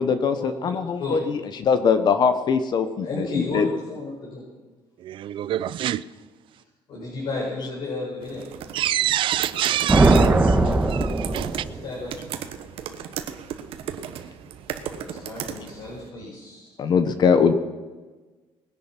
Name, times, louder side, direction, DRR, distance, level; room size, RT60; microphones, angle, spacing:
voice 1, 0.0-3.7 16.8-17.5, left 6 dB, 45° left, 10 dB, 1.0 m, -21 dB
voice 2, 3.0-4.4 6.9-8.4 11.7-12.2 14.8-16.7, left 3 dB, 65° left, -4 dB, 5.1 m, -32 dB
voice 3, 5.1-6.0 8.7-10.6 10.9-11.5, right 12 dB, 60° right, 17 dB, 0.5 m, -26 dB
sound 1, 8.2-16.1, right 9 dB, 75° right, 1.3 m, -36 dB
sound 2, 9.9-12.0, right 2 dB, 15° right, 1.4 m, -19 dB
20.0 x 10.5 x 6.0 m, 1.3 s
cardioid pair, 130°, 10 cm